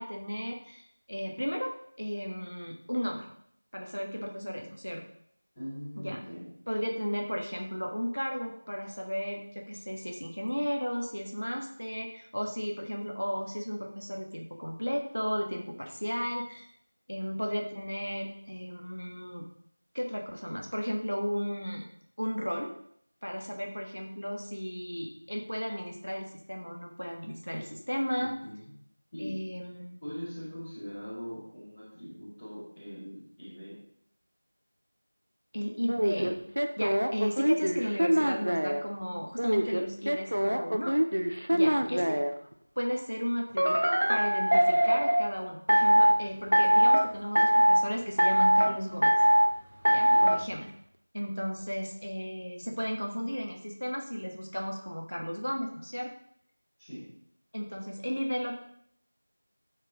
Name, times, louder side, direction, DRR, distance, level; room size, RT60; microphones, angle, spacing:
voice 1, 0.0-3.3 3.7-5.0 6.0-6.2 6.7-16.7 17.1-19.5 19.9-21.9 22.2-22.7 23.2-28.3 29.2-30.0 35.5-36.4 36.8-41.0 41.5-42.2 42.8-49.1 49.9-50.6 51.1-56.1 57.5-58.6, equal, 80° left, 1 dB, 1.6 m, -34 dB
voice 2, 5.5-6.5 28.1-28.7 29.1-29.4 30.0-33.8 41.7-42.1 49.9-50.3 56.8-57.1, equal, 10° left, -18 dB, 3.1 m, -42 dB
sound 1, 35.9-38.8 39.4-42.3 43.6-45.2 45.7-46.2 46.5-47.0 47.3-47.8 48.2-48.7 49.0-49.5 49.8-50.4, equal, 65° right, 0.8 m, -23 dB
12.5 x 6.5 x 3.1 m, 0.68 s
figure-of-eight pair, 175°, 0 cm